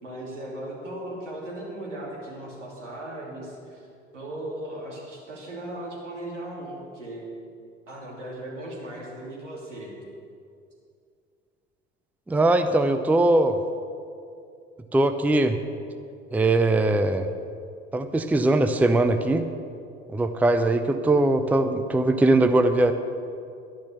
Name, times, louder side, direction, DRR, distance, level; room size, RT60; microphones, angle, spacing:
voice 1, 0.0-3.9 4.1-7.3 7.9-9.9, right 1 dB, 80° right, -3 dB, 3.0 m, -37 dB
voice 2, 12.3-13.6 14.9-15.6 16.3-17.3 17.9-19.5 20.1-22.9, right 2 dB, 5° right, 9 dB, 0.6 m, -21 dB
11.5 x 10.5 x 6.8 m, 2.4 s
figure-of-eight pair, 65°, 36 cm